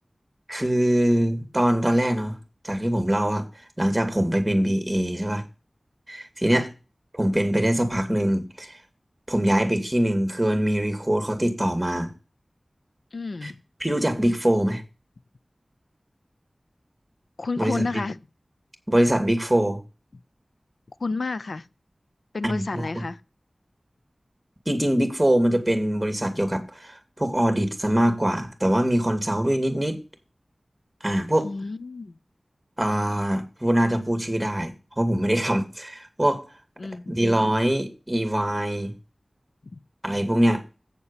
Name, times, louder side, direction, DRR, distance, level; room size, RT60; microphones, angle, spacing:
voice 1, 0.5-2.4 2.6-3.4 3.8-5.4 6.1-6.7 7.1-8.8 9.3-12.1 13.4-13.5 13.8-14.8 17.6-17.9 18.9-19.8 22.4-23.1 24.7-30.0 31.0-31.5 32.8-36.5 37.1-38.9 40.0-40.6, right 1 dB, 15° right, 2.1 m, -23 dB
voice 2, 13.1-13.6 17.4-18.2 21.0-21.7 22.3-23.2 31.4-32.2 36.8-37.2 39.7-39.8, left 3 dB, 85° left, 0.5 m, -30 dB
8.2 x 7.1 x 6.7 m
wide cardioid pair, 70°, 0 cm